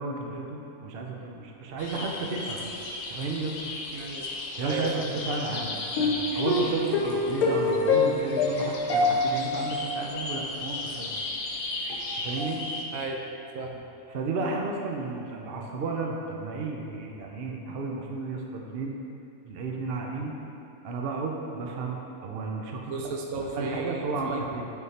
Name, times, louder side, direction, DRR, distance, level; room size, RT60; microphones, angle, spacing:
voice 1, 0.0-2.7 3.1-3.6 4.6-11.1 12.2-12.6 14.1-19.0 19.4-20.3 20.8-23.0 23.5-24.7, right 3 dB, 55° right, 0 dB, 0.7 m, -33 dB
sound 1, 1.8-12.8, left 3 dB, 85° left, 1.3 m, -29 dB
voice 2, 3.9-4.3 4.6-5.1 12.9-13.2 13.5-13.8 22.9-24.4, right 3 dB, 75° right, 0 dB, 1.0 m, -34 dB
9.4 x 3.7 x 2.8 m, 2.9 s
omnidirectional pair, 1.5 m